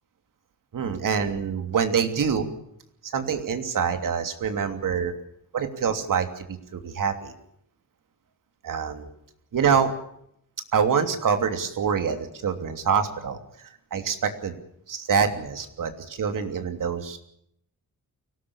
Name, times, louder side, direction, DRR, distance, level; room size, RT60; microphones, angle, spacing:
voice 1, 0.7-2.5 3.1-5.1 5.5-7.3 8.6-9.1 9.5-9.9 10.7-14.6 14.9-17.2, right 6 dB, 70° right, 7 dB, 3.0 m, -26 dB
24.5 x 18.0 x 7.2 m, 0.71 s
wide cardioid pair, 135°, 33 cm